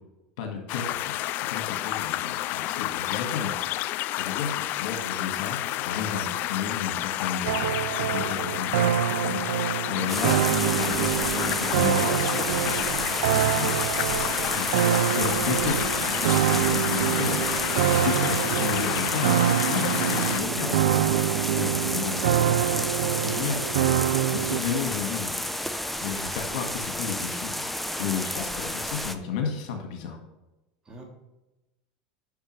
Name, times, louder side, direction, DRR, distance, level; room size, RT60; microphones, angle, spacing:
voice 1, 0.4-3.5 4.1-7.6 8.0-14.2 14.6-14.7 15.2-23.8 24.3-25.3 26.0-27.6 28.0-30.2, left 6 dB, 70° left, 4 dB, 1.8 m, -33 dB
sound 1, 0.7-20.4, left 15 dB, 55° left, 0.3 m, -30 dB
sound 2, 7.5-24.6, right 12 dB, 85° right, 0.3 m, -26 dB
voice 2, 8.2-8.6 17.9-18.1 30.8-31.0, right 1 dB, 20° right, 0 dB, 2.3 m, -43 dB
sound 3, 10.1-29.2, left 1 dB, 5° left, 0.6 m, -31 dB
8.1 x 6.5 x 3.3 m, 0.99 s
supercardioid pair, 105°, 4 cm